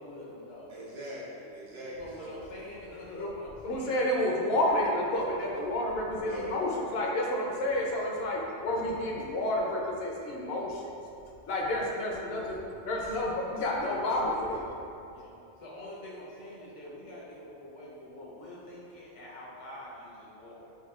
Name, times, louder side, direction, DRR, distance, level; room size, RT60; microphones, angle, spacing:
voice 1, 0.0-0.7 2.0-4.0 15.1-20.7, left 1 dB, 85° left, -5 dB, 1.1 m, -45 dB
voice 2, 0.7-2.4 6.2-6.8, equal, 80° right, -7 dB, 1.1 m, -41 dB
voice 3, 3.6-10.9 11.5-14.7, left 1 dB, 65° left, -2 dB, 0.7 m, -30 dB
5.8 x 2.2 x 2.4 m, 2.7 s
omnidirectional pair, 1.2 m